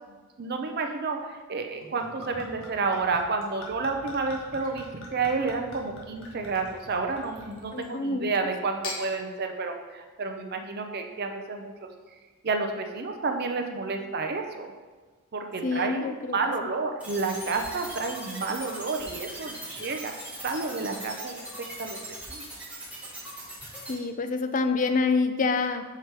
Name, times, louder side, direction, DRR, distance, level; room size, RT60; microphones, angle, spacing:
voice 1, 0.4-11.7 12.4-14.7 15.3-20.1 20.4-21.4 21.8-22.0 22.3-22.4, right 4 dB, 45° right, 4 dB, 0.6 m, -30 dB
Gurgling / Chink clink / Liquid, 1.8-8.0 8.6-9.0, left 2 dB, 60° left, 1.3 m, -43 dB
voice 2, 7.7-8.3 15.6-16.4 23.9-25.8, left 4 dB, 35° left, 7 dB, 0.4 m, -26 dB
sound 1, 17.0-23.9, right 1 dB, 5° right, 1.4 m, -40 dB
5.8 x 4.8 x 4.6 m, 1.4 s
head